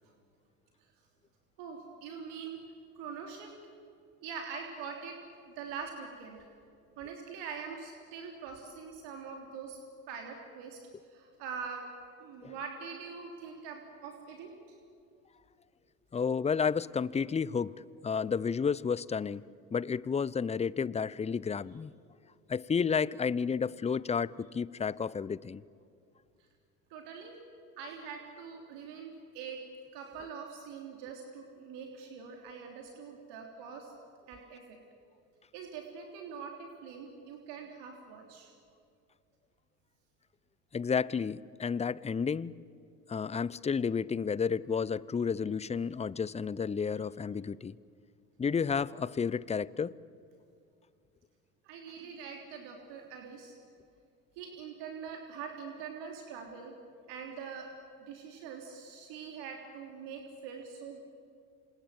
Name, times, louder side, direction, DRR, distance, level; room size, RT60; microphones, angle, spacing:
voice 1, 1.6-2.6 3.0-3.5 4.2-5.2 5.6-6.5 7.0-9.8 10.1-10.8 11.1-11.8 12.2-14.8 26.9-27.4 27.8-29.6 29.9-33.9 34.3-34.8 35.5-38.5 51.6-53.5 54.4-56.7 57.1-57.7 58.0-61.0, right 6 dB, 65° right, 2 dB, 3.6 m, -43 dB
voice 2, 16.1-17.8 18.0-19.4 19.7-21.9 22.5-25.6 40.7-42.6 43.1-47.8 48.4-50.0, left 6 dB, 15° left, 21 dB, 0.6 m, -31 dB
27.5 x 27.0 x 7.7 m, 2.4 s
hypercardioid pair, 65°, 45 cm